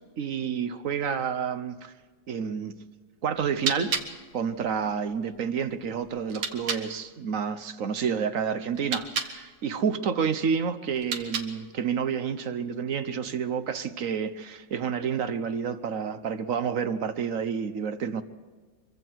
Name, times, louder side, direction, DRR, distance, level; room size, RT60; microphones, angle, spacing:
voice 1, 0.2-1.9 2.3-2.8 3.2-4.0 4.3-18.2, right 7 dB, 55° right, 1.1 m, -29 dB
sound 1, 3.3-6.9 8.7-9.4 10.9-11.7, right 5 dB, 75° right, 2.2 m, -34 dB
25.0 x 23.5 x 4.7 m
omnidirectional pair, 2.1 m